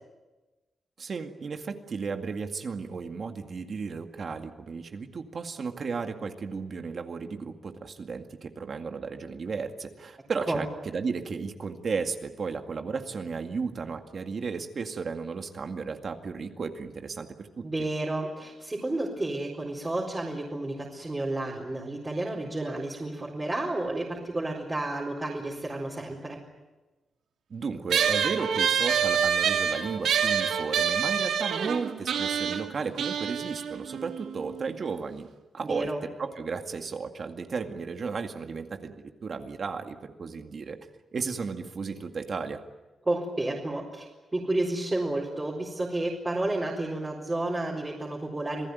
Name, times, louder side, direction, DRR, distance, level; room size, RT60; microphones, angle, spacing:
voice 1, 1.0-17.7 27.5-35.3 35.5-40.8 41.1-42.6, right 5 dB, 45° right, 5 dB, 2.1 m, -34 dB
voice 2, 17.6-26.4 35.7-36.0 43.1-48.7, right 2 dB, 15° right, -4 dB, 4.2 m, -31 dB
sound 1, 27.9-34.7, right 7 dB, 90° right, 2.3 m, -27 dB
27.5 x 19.0 x 9.5 m, 1.2 s
wide cardioid pair, 140°, 0 cm